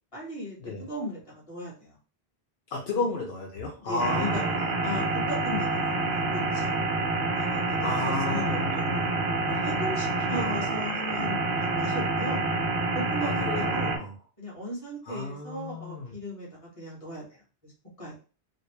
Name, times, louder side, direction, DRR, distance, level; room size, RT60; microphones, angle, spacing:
voice 1, 0.1-2.0 2.9-3.0 3.8-4.4 4.8-6.8 7.3-9.1 9.4-12.4 12.9-13.9 14.4-17.2 17.6-17.7 18.0-18.1, equal, 30° left, -5 dB, 1.6 m, -37 dB
voice 2, 2.7-4.8 7.8-9.2 10.3-10.9 13.2-14.1 15.1-16.1, left 2 dB, 75° left, 0 dB, 0.9 m, -33 dB
sound 1, 4.0-14.0, right 3 dB, 70° right, 0.9 m, -27 dB
4.1 x 2.0 x 3.1 m, 0.37 s
omnidirectional pair, 1.1 m